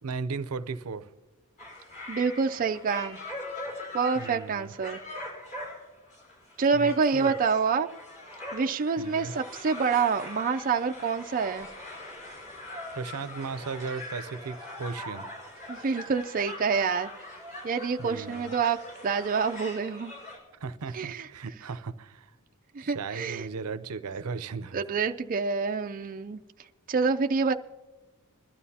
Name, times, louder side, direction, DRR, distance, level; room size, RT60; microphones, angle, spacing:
voice 1, 0.0-1.1 4.2-4.7 6.7-7.3 9.0-9.3 12.9-15.3 18.0-18.5 20.6-22.3 22.8-24.8, right 4 dB, 80° right, 0.6 m, -36 dB
sound 1, 1.6-20.4, left 1 dB, 35° left, 5.4 m, -42 dB
voice 2, 2.1-3.2 3.9-5.0 6.6-7.9 8.5-11.7 15.7-17.1 17.6-20.1 20.9-21.3 22.7-23.5 24.7-26.4 26.9-27.5, right 5 dB, 40° right, 0.4 m, -27 dB
21.5 x 13.0 x 2.8 m
head